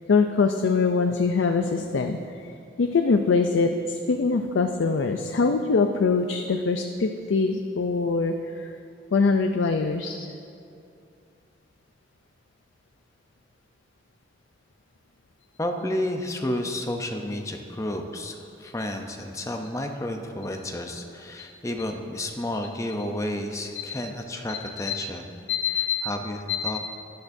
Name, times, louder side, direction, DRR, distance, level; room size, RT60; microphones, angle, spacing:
voice 1, 0.1-2.4 2.8-8.7 9.1-10.3 23.7-23.8 24.5-24.6 24.8-25.1 25.5-26.1 26.6-26.8, left 4 dB, 80° left, 5 dB, 0.4 m, -23 dB
voice 2, 15.6-25.2 26.0-26.8, left 1 dB, 15° left, 4 dB, 0.5 m, -31 dB
13.0 x 10.5 x 2.6 m, 2.5 s
head